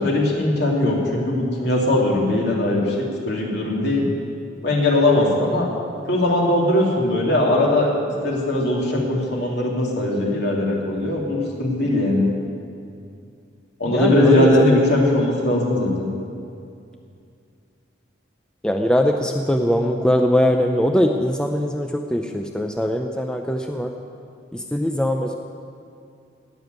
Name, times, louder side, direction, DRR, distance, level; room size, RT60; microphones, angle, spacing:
voice 1, 0.0-4.1 4.6-5.7 6.1-7.9 8.2-12.2 13.8-16.1, left 1 dB, 60° left, -2 dB, 3.0 m, -20 dB
voice 2, 13.9-14.5 18.6-23.9 24.5-25.3, equal, 5° left, 3 dB, 0.5 m, -21 dB
17.5 x 7.0 x 9.3 m, 2.4 s
head